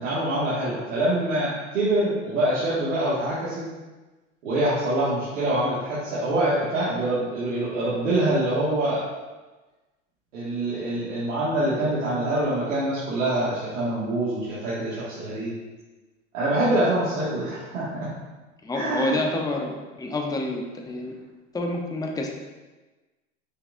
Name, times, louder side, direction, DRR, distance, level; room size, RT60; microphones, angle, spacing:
voice 1, 0.0-3.6 4.4-9.1 10.3-15.6 16.3-18.1 18.7-19.2, right 1 dB, 80° right, -10 dB, 2.0 m, -25 dB
voice 2, 18.6-21.1 21.5-22.3, left 2 dB, 10° left, 1 dB, 0.8 m, -28 dB
6.5 x 5.7 x 2.6 m, 1.2 s
hypercardioid pair, 100°, 37 cm